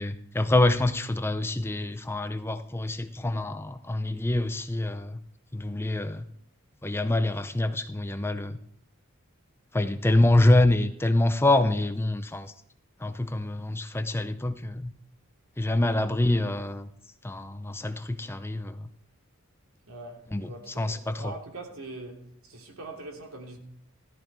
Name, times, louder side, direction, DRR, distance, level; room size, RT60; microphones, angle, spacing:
voice 1, 0.0-5.2 5.5-6.2 6.8-8.6 9.7-12.5 13.0-14.9 15.6-16.9 17.2-18.9 20.3-21.2, left 1 dB, 10° left, 0.6 m, -26 dB
voice 2, 19.9-23.6, right 2 dB, 80° right, 2.9 m, -42 dB
14.5 x 14.0 x 4.6 m
head